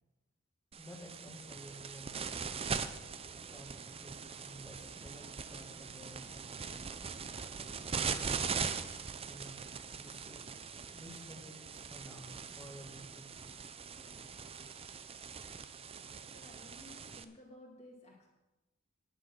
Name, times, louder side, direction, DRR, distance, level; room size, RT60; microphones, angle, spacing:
voice 1, 0.7-2.2 2.8-3.0 3.4-6.9 8.0-10.5 10.9-13.6, equal, 15° left, 0 dB, 2.0 m, -53 dB
sound 1, 0.7-17.2, right 6 dB, 30° right, 0.6 m, -41 dB
voice 2, 16.3-18.3, left 1 dB, 30° left, -3 dB, 2.2 m, -55 dB
10.0 x 9.6 x 6.0 m, 1.0 s
head